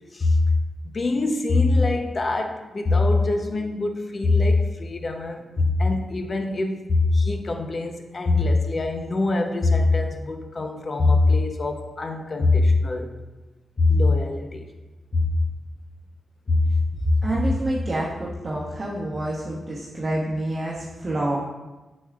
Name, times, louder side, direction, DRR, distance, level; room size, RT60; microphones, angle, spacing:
voice 1, 0.8-13.1 13.8-14.7 15.1-15.3 16.5-16.6, left 3 dB, 40° left, 5 dB, 0.7 m, -22 dB
voice 2, 17.0-21.4, equal, 35° right, -6 dB, 1.1 m, -26 dB
7.8 x 6.3 x 2.4 m, 1.1 s
cardioid pair, 85°, 0 cm